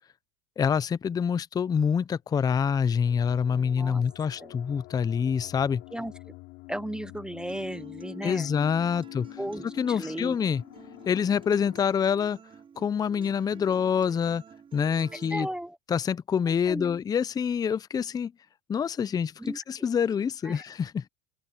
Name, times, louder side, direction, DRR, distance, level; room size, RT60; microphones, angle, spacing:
voice 1, 0.6-5.8 8.2-9.3 9.8-10.6 11.1-12.4 12.8-14.4 14.7-15.5 15.9-18.3 18.7-19.3 19.7-21.1, left 7 dB, 20° left, 0.5 m, -26 dB
sound 1, 2.6-11.8, left 25 dB, 65° left, 6.0 m, -46 dB
voice 2, 3.5-4.0 4.4-4.5 5.9-6.1 6.7-8.5 9.4-10.4 15.3-15.8 16.5-17.0 19.4-19.9 20.4-20.6, right 1 dB, 5° right, 0.9 m, -36 dB
Acoustic guitar, 7.5-15.5, right 7 dB, 30° right, 5.6 m, -50 dB
open air
supercardioid pair, 110°, 19 cm